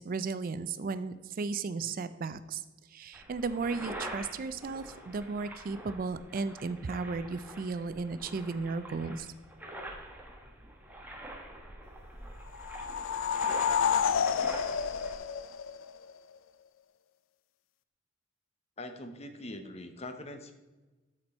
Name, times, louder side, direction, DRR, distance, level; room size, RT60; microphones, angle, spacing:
voice 1, 0.0-2.6 2.9-9.3, right 4 dB, 45° right, 13 dB, 0.4 m, -35 dB
sound 1, 3.1-15.1, right 1 dB, 10° right, 1.1 m, -45 dB
sound 2, 12.5-16.1, left 7 dB, 75° left, 0.4 m, -29 dB
voice 2, 18.8-20.5, left 1 dB, 30° left, 7 dB, 0.8 m, -42 dB
12.5 x 4.4 x 4.3 m, 1.2 s
head